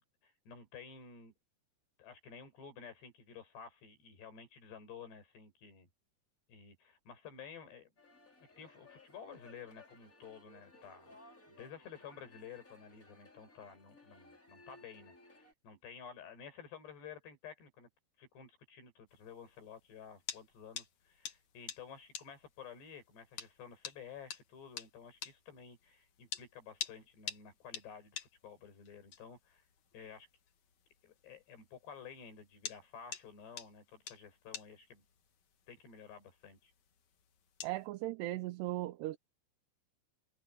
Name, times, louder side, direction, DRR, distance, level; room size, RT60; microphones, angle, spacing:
voice 1, 0.0-1.3 2.0-5.9 6.5-7.9 8.6-11.1 11.5-17.9 18.2-29.6 29.9-30.3 31.0-35.0 35.7-36.7, left 7 dB, 80° left, 7.7 m, -52 dB
sound 1, 8.0-15.5, left 2 dB, 20° left, 4.7 m, -60 dB
sound 2, 19.1-37.9, left 8 dB, 50° left, 2.7 m, -50 dB
voice 2, 37.6-39.2, right 17 dB, 80° right, 2.9 m, -37 dB
omnidirectional pair, 4.8 m